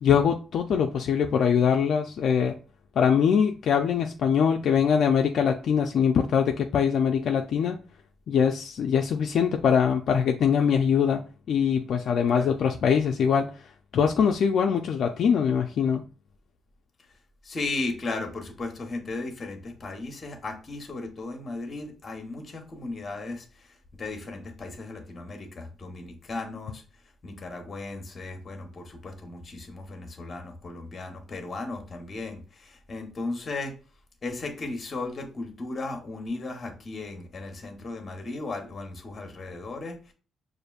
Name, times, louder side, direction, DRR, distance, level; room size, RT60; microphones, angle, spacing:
voice 1, 0.0-2.6 3.0-7.8 8.3-11.2 11.5-13.5 13.9-16.0, left 7 dB, 55° left, 0.3 m, -23 dB
voice 2, 17.4-23.7 24.0-26.8 27.2-33.7 34.2-40.1, left 3 dB, 30° left, 0.9 m, -36 dB
6.4 x 2.5 x 2.3 m
cardioid pair, 145°, 0 cm